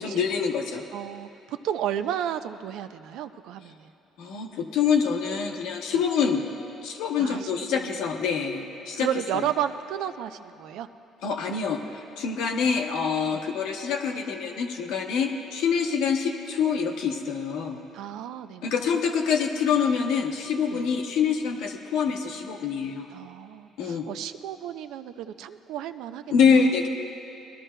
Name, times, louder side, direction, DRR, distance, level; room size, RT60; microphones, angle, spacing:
voice 1, 0.0-0.8 4.2-6.4 6.8-9.1 9.3-9.5 11.2-17.8 18.6-23.1 23.8-24.1 26.3-26.9, left 6 dB, 75° left, 3 dB, 0.9 m, -25 dB
voice 2, 0.9-3.9 7.2-7.8 9.0-10.9 13.3-13.4 17.9-18.7 20.7-20.8 23.1-26.6, right 10 dB, 75° right, 10 dB, 0.4 m, -33 dB
20.5 x 12.0 x 2.2 m, 2.8 s
supercardioid pair, 70°, 0 cm